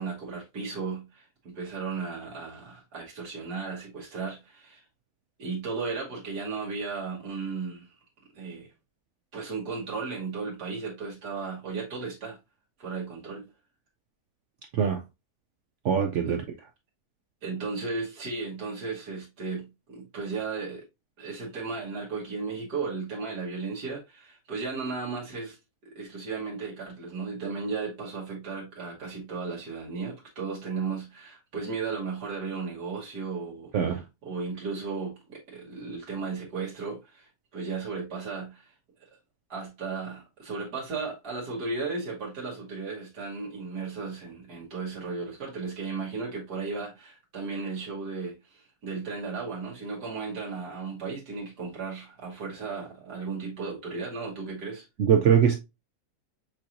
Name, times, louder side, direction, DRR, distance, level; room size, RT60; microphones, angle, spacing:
voice 1, 0.0-4.8 5.4-8.0 8.3-8.7 9.3-12.4 12.8-13.5 16.2-16.4 17.4-20.8 21.2-25.6 25.8-38.7 39.5-54.9, right 4 dB, 85° right, 1.9 m, -35 dB
voice 2, 15.8-16.4 33.7-34.0 55.0-55.5, right 8 dB, 70° right, 0.7 m, -22 dB
6.3 x 2.9 x 2.5 m
omnidirectional pair, 1.7 m